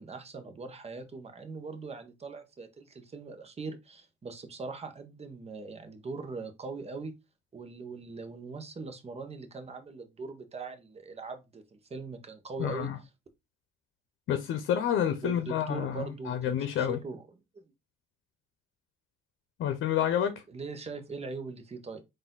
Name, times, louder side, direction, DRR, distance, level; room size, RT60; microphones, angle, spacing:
voice 1, 0.0-7.1 7.5-12.9 15.2-17.3 17.5-17.6 20.5-22.0, right 4 dB, 30° right, 1.0 m, -41 dB
voice 2, 12.6-13.0 14.3-17.0 19.6-20.4, left 9 dB, 75° left, 0.7 m, -29 dB
4.0 x 2.6 x 3.7 m
cardioid pair, 90°, 20 cm